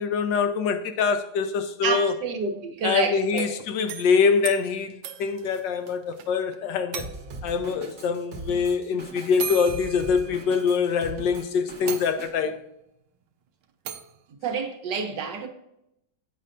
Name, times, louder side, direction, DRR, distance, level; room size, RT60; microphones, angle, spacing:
voice 1, 0.0-2.1 2.8-7.1 7.4-12.6, left 5 dB, 80° left, 1.4 m, -24 dB
voice 2, 1.8-3.4 14.4-15.5, right 5 dB, 70° right, 1.6 m, -28 dB
sound 1, 3.2-6.3 6.5-6.6 6.9-7.5 8.6-8.7 9.4-10.8 11.3-11.4 11.9-12.6 13.9-14.2, right 8 dB, 90° right, 1.4 m, -37 dB
Drum kit, 7.0-12.3, right 3 dB, 45° right, 1.3 m, -40 dB
8.6 x 5.5 x 2.5 m
omnidirectional pair, 2.0 m